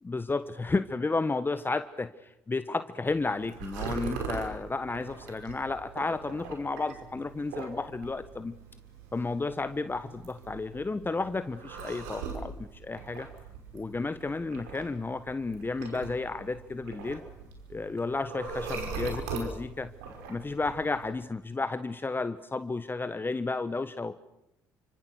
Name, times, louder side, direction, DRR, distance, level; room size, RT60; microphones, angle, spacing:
voice 1, 0.0-8.5 9.1-13.3 13.7-17.2 17.7-19.9 20.3-24.3, left 3 dB, 20° left, 12 dB, 1.3 m, -32 dB
sound 1, 3.1-21.1, right 4 dB, 80° right, 5.5 m, -41 dB
29.5 x 26.0 x 6.4 m, 0.84 s
hypercardioid pair, 55°, 9 cm